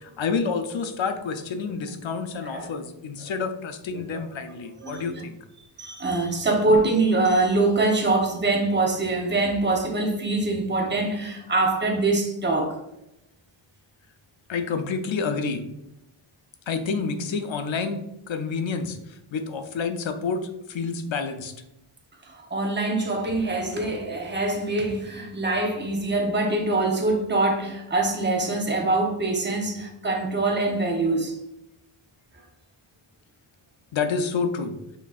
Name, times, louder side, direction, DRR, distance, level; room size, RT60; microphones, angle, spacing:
voice 1, 0.0-5.4 14.5-15.6 16.7-18.0 18.3-21.5 33.9-34.7, left 5 dB, 65° left, 0.6 m, -29 dB
voice 2, 4.8-5.2 5.8-12.8 22.2-31.4, right 2 dB, 20° right, 0.8 m, -24 dB
5.8 x 3.0 x 2.4 m
wide cardioid pair, 100°, 49 cm